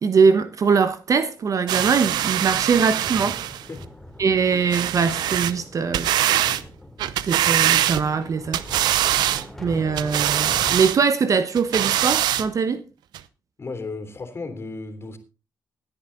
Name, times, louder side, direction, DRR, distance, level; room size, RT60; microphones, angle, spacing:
voice 1, 0.0-3.4 4.2-6.1 7.2-9.0 9.6-12.8, right 5 dB, 50° right, 1.1 m, -22 dB
sound 1, 1.7-3.7 4.7-5.6 5.9-6.6 7.0-8.2 8.5-9.4 10.0-11.0 11.6-12.5 13.1-13.2, right 12 dB, 80° right, 0.7 m, -23 dB
sound 2, 3.1-10.8, left 1 dB, 5° left, 2.7 m, -41 dB
voice 2, 13.6-15.2, left 3 dB, 35° left, 3.4 m, -34 dB
17.0 x 10.0 x 3.9 m
cardioid pair, 70°, 7 cm